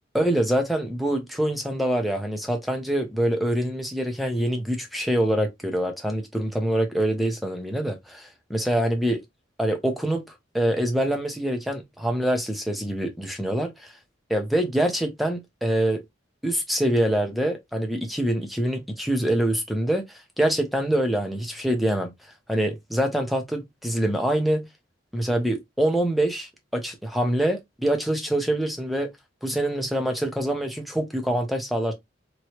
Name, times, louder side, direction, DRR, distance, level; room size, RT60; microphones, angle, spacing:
voice 1, 0.1-9.2 9.6-10.2 10.5-13.9 14.3-16.0 16.4-22.1 22.5-24.7 25.1-29.1 29.4-31.9, right 1 dB, ahead, 0.7 m, -25 dB
3.0 x 3.0 x 3.0 m
head